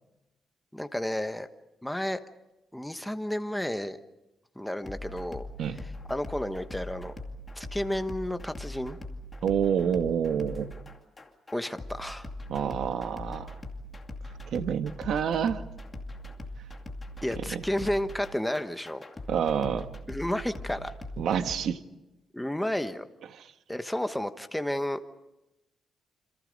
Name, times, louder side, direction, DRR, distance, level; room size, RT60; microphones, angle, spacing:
voice 1, 0.7-1.5 1.8-2.2 2.7-4.0 4.5-5.5 6.1-7.1 7.6-9.0 11.5-12.3 17.2-19.0 20.1-20.9 22.3-23.1 23.7-25.0, left 1 dB, 5° left, 8 dB, 1.2 m, -31 dB
sound 1, 4.8-21.6, left 1 dB, 20° left, 2.4 m, -41 dB
voice 2, 9.4-10.7 12.5-13.5 14.5-15.6 17.4-17.6 19.3-19.9 21.2-21.8 23.4-23.5, right 8 dB, 70° right, 9 dB, 1.4 m, -28 dB
28.0 x 27.0 x 5.3 m, 0.95 s
cardioid pair, 140°, 0 cm